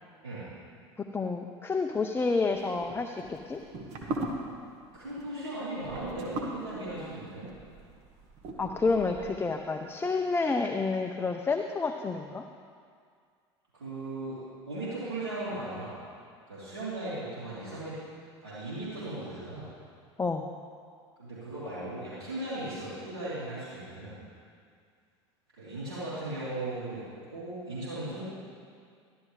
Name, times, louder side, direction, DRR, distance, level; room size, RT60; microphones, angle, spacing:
voice 1, 1.1-3.6 8.6-12.4 20.2-20.4, left 4 dB, 15° left, 4 dB, 0.6 m, -29 dB
sound 1, 2.5-9.5, right 1 dB, 50° right, 1.6 m, -40 dB
voice 2, 4.9-7.5 13.7-14.4 14.7-16.0 16.5-18.0 18.4-19.7 21.2-24.2 25.6-27.0 27.3-28.2, right 2 dB, 85° right, -11 dB, 3.4 m, -37 dB
13.0 x 12.0 x 3.3 m, 2.2 s
hypercardioid pair, 80°, 14 cm